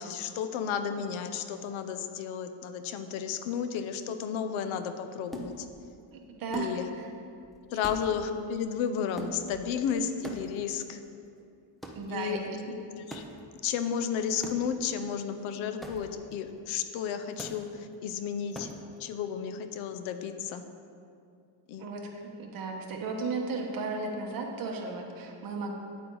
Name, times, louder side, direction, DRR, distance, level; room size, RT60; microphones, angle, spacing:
voice 1, 0.0-5.7 6.5-6.9 7.7-11.0 12.1-12.5 12.7-13.2 13.6-18.7 19.0-20.6 21.7-21.9, left 7 dB, 70° left, 9 dB, 0.7 m, -33 dB
sound 1, 5.3-6.0 6.5-7.1 7.4-7.5 7.8-8.5 9.1-9.9 10.2-10.8 11.8-12.2 13.1-13.5 14.4-14.9 15.8-16.3 17.4-17.8 18.5-19.0, equal, ahead, 0.4 m, -43 dB
voice 2, 6.1-7.1 7.7-7.8 11.9-12.8 21.8-25.7, right 3 dB, 45° right, 1 dB, 1.2 m, -35 dB
9.5 x 8.8 x 3.9 m, 2.5 s
cardioid pair, 170°, 49 cm